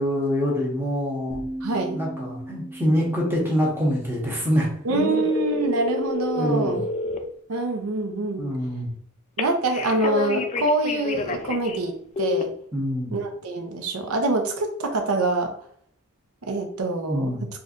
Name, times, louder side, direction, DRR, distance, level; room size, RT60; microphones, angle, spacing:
voice 1, 0.0-1.4 1.9-5.2 6.3-6.8 8.4-8.9 12.7-13.2 17.1-17.5, equal, 10° right, -3 dB, 0.9 m, -25 dB
sound 1, 1.3-5.2, right 1 dB, 30° right, 0.5 m, -38 dB
voice 2, 1.6-2.0 4.8-6.8 7.5-8.5 9.4-12.5 13.1-15.5 16.4-17.3, right 2 dB, 85° right, 5 dB, 0.7 m, -25 dB
sound 2, 4.9-7.2 9.4-11.8 12.2-12.4, left 3 dB, 30° left, 0.3 m, -28 dB
4.3 x 2.5 x 2.5 m, 0.64 s
head